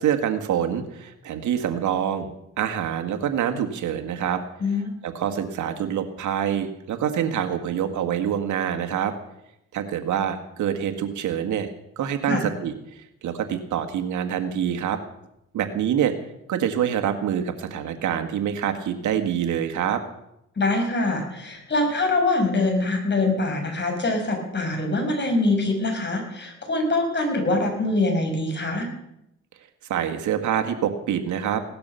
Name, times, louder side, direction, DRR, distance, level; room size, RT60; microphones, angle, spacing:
voice 1, 0.0-2.3 2.6-4.4 5.0-9.1 9.7-11.7 12.0-12.7 13.2-15.0 15.5-16.1 16.5-20.0 29.9-31.6, right 9 dB, 75° right, 7 dB, 1.8 m, -26 dB
voice 2, 4.6-4.9 12.3-12.5 20.6-28.9, left 2 dB, 35° left, 3 dB, 5.9 m, -24 dB
17.5 x 12.0 x 6.9 m, 0.81 s
cardioid pair, 90°, 30 cm